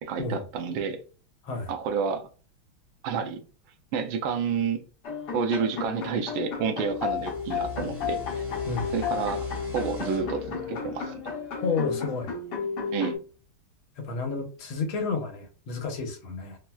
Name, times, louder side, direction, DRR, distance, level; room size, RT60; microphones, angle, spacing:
voice 1, 0.0-1.0 1.7-2.3 3.0-3.4 3.9-4.8 5.3-8.2 8.9-9.5 9.7-11.3 12.9-13.2, right 6 dB, 80° right, 1.3 m, -29 dB
sound 1, 5.0-13.2, left 6 dB, 65° left, 1.2 m, -33 dB
sound 2, 6.8-12.1, left 3 dB, 20° right, 0.9 m, -41 dB
voice 2, 11.6-12.3 14.0-16.6, left 4 dB, 80° left, 1.5 m, -31 dB
4.3 x 2.0 x 2.2 m
omnidirectional pair, 2.2 m